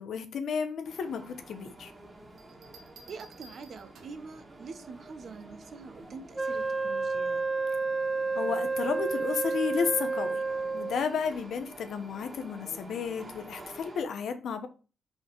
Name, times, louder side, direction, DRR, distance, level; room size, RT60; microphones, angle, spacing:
voice 1, 0.0-1.9 8.3-10.4 10.7-14.7, left 6 dB, 75° left, 1.0 m, -32 dB
sound 1, 0.8-14.0, right 1 dB, 25° right, 1.9 m, -50 dB
sound 2, 2.4-4.3 5.9-6.3, right 4 dB, 80° right, 1.2 m, -54 dB
voice 2, 3.1-7.5, right 4 dB, 60° right, 1.0 m, -45 dB
Wind instrument woodwind instrument, 6.3-11.1, right 3 dB, 10° right, 0.5 m, -30 dB
5.5 x 4.0 x 6.0 m
cardioid pair, 100°, 0 cm